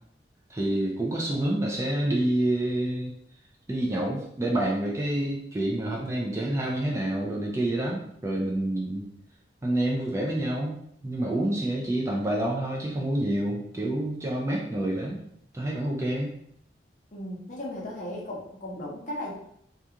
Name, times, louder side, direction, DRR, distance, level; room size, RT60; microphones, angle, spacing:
voice 1, 0.5-3.1 3.7-9.0 9.6-15.2 15.5-16.3, right 1 dB, 15° right, -2 dB, 0.3 m, -28 dB
voice 2, 17.1-19.3, left 1 dB, 45° left, -4 dB, 0.7 m, -36 dB
2.4 x 2.3 x 2.8 m, 0.70 s
head